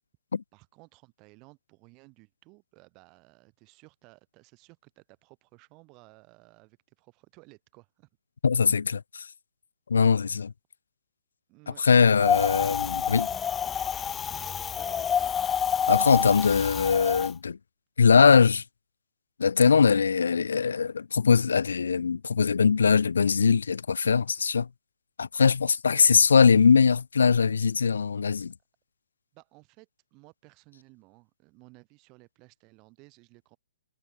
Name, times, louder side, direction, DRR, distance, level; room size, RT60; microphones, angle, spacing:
voice 1, 0.5-8.1 11.5-11.8 12.4-12.6 14.6-15.5 25.9-26.1 29.3-33.6, right 27 dB, 20° right, 3.7 m, -56 dB
voice 2, 8.4-9.3 9.9-10.5 11.8-13.3 15.9-17.6 18.0-18.6 19.4-24.7 25.2-28.5, left 5 dB, 85° left, 0.5 m, -21 dB
Wind, 12.2-17.3, left 7 dB, 10° left, 0.4 m, -28 dB
hypercardioid pair, 170°, 0 cm